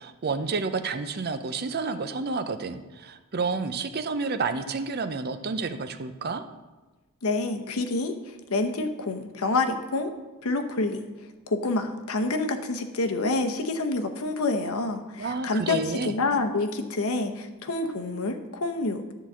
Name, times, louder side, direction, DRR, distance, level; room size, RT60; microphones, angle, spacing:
voice 1, 0.0-6.4 15.2-16.1, right 4 dB, 45° right, 9 dB, 0.5 m, -30 dB
voice 2, 7.2-8.2 8.5-10.1 10.4-11.0 11.5-19.1, left 3 dB, 80° left, 5 dB, 0.8 m, -27 dB
10.5 x 4.0 x 7.3 m, 1.2 s
head